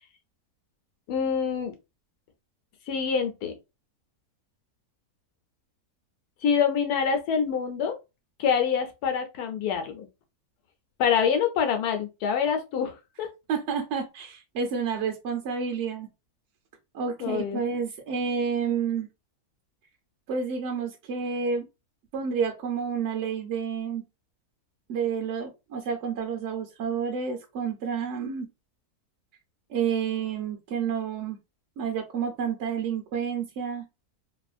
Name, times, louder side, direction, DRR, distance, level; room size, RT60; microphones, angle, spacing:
voice 1, 1.1-1.7 2.9-3.5 6.4-8.0 8.4-10.1 11.0-13.3 17.2-17.6, left 7 dB, 90° left, 1.2 m, -26 dB
voice 2, 13.5-16.1 16.9-19.1 20.3-21.6 22.1-24.0 24.9-28.5 29.7-31.4 31.8-33.8, right 6 dB, 65° right, 0.8 m, -29 dB
2.8 x 2.5 x 2.3 m
omnidirectional pair, 1.6 m